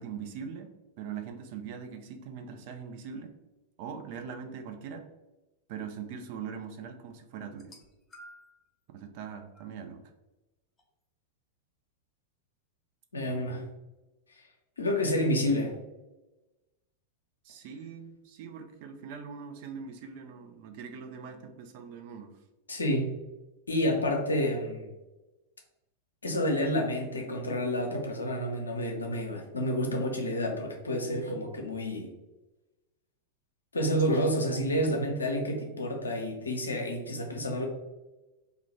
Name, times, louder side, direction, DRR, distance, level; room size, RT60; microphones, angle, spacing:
voice 1, 0.0-3.3 3.8-5.1 5.7-7.7 8.9-10.0 13.3-13.7 17.4-22.4 34.1-34.2, right 6 dB, 45° right, 6 dB, 0.3 m, -42 dB
sound 1, 7.5-8.7 9.5-9.8 10.8-10.9, equal, 20° left, 0.5 m, -52 dB
voice 2, 13.1-13.6 14.8-15.7 22.7-23.2 23.7-24.9 26.2-32.1 33.7-37.7, equal, 75° left, 1 dB, 0.5 m, -29 dB
2.4 x 2.1 x 2.9 m, 1.1 s
figure-of-eight pair, 90°, 0 cm